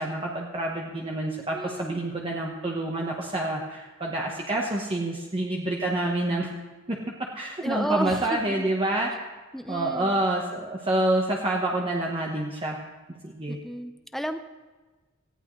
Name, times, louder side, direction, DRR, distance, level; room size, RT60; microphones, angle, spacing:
voice 1, 0.0-6.5 6.9-7.0 7.3-9.3 9.7-12.8 13.2-13.6, right 1 dB, 25° right, -2 dB, 1.1 m, -27 dB
voice 2, 1.3-2.0 7.6-8.7 9.5-10.2 13.5-14.4, equal, ahead, 8 dB, 0.7 m, -32 dB
18.5 x 15.0 x 3.2 m, 1.3 s
head